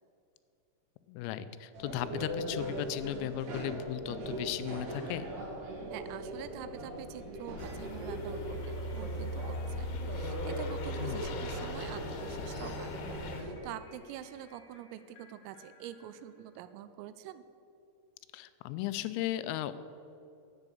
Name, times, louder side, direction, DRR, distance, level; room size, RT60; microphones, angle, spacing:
voice 1, 1.1-5.3 11.0-11.2 18.3-19.7, left 12 dB, 85° left, 13 dB, 3.3 m, -36 dB
sound 1, 1.7-13.5, right 1 dB, 50° right, 2.7 m, -40 dB
voice 2, 5.9-12.9 13.3-17.5, right 11 dB, 85° right, 12 dB, 3.3 m, -46 dB
sound 2, 7.6-13.4, left 1 dB, 70° left, 3.0 m, -39 dB
sound 3, 8.5-16.8, left 2 dB, 50° left, 2.1 m, -62 dB
11.0 x 8.1 x 8.4 m, 2.7 s
omnidirectional pair, 5.9 m